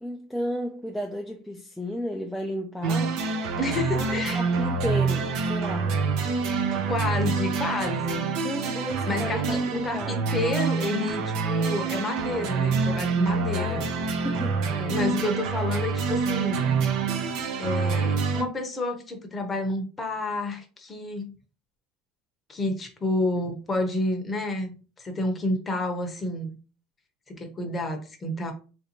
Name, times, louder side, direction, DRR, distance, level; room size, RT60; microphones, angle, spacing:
voice 1, 0.0-3.2 3.9-5.9 8.4-10.2 13.5-14.0 14.2-15.0 23.3-23.4, equal, ahead, 0.3 m, -33 dB
sound 1, 2.8-18.4, right 4 dB, 60° right, 0.5 m, -26 dB
voice 2, 3.6-4.5 6.7-8.3 9.1-13.8 14.9-16.8 17.6-21.3 22.5-26.6 27.3-28.5, left 2 dB, 20° left, 0.7 m, -30 dB
3.3 x 2.7 x 2.9 m
supercardioid pair, 140°, 0 cm